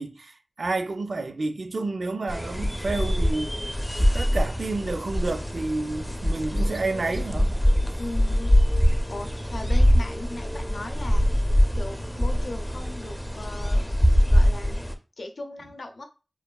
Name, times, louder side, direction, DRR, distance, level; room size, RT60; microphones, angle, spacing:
voice 1, 0.0-3.5 4.0-7.5, right 3 dB, 80° right, 0.3 m, -30 dB
sound 1, 2.3-14.9, equal, 10° left, 0.4 m, -23 dB
voice 2, 8.0-8.6 8.9-11.4 11.7-13.8 14.3-14.9 15.2-16.0, left 2 dB, 85° left, 0.4 m, -38 dB
3.0 x 2.2 x 2.2 m
wide cardioid pair, 55°, 0 cm